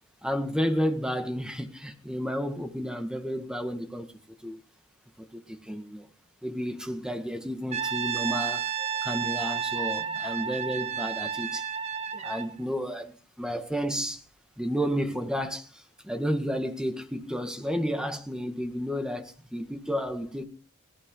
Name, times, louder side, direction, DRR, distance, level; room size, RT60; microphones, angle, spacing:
voice 1, 0.2-4.1 4.4-4.6 5.3-6.1 6.4-8.7 9.0-11.7 12.1-14.2 14.6-20.4, equal, 5° right, 1.9 m, -31 dB
Brass instrument, 7.7-12.5, right 7 dB, 30° right, 1.5 m, -31 dB
18.0 x 16.5 x 3.9 m
head